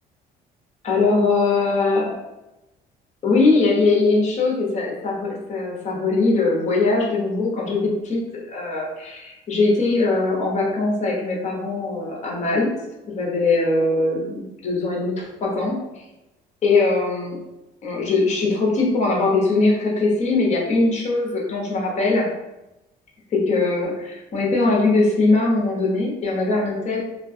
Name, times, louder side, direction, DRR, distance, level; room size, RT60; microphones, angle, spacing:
voice 1, 0.8-2.2 3.2-12.7 13.1-16.0 16.6-17.4 17.8-22.3 23.3-27.0, left 3 dB, 45° left, -2 dB, 0.8 m, -21 dB
2.3 x 2.2 x 2.6 m, 0.97 s
cardioid pair, 110°, 17 cm